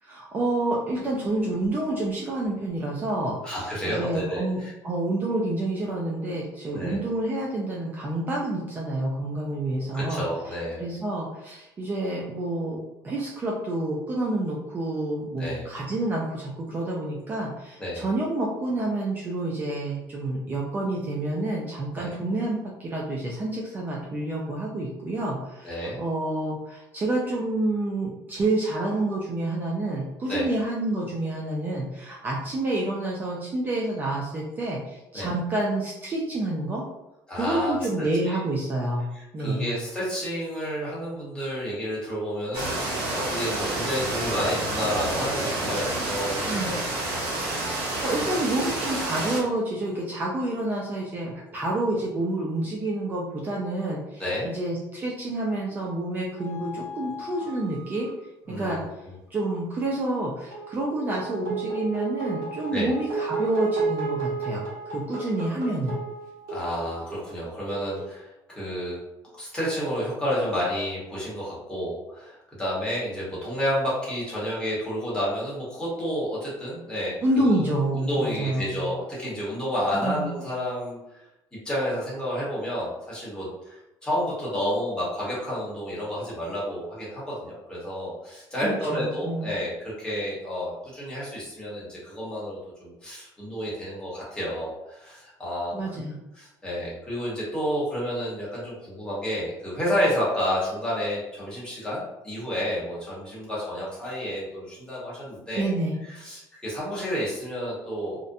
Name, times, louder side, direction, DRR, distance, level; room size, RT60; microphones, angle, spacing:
voice 1, 0.0-36.8 37.4-39.7 46.4-46.7 47.8-58.1 58.5-59.0 59.3-65.9 77.2-78.8 79.9-80.3 88.6-89.5 95.7-96.1 105.6-105.9, right 2 dB, 25° right, -3 dB, 0.3 m, -28 dB
voice 2, 3.4-4.7 6.7-7.0 9.9-10.8 15.4-15.7 17.8-18.0 22.0-22.1 25.6-26.0 30.3-30.5 35.1-35.3 37.3-38.4 39.1-46.7 54.2-54.5 58.5-58.8 62.7-62.9 66.5-69.0 69.4-77.7 77.9-81.0 81.6-96.0 96.4-105.7 106.1-108.2, equal, 10° left, -7 dB, 1.0 m, -30 dB
sound 1, 42.5-49.4, right 2 dB, 70° right, 0.9 m, -29 dB
sound 2, 55.5-55.6 56.4-58.2 60.5-68.1, right 4 dB, 55° right, 1.1 m, -33 dB
2.4 x 2.1 x 2.5 m, 0.93 s
cardioid pair, 150°, 8 cm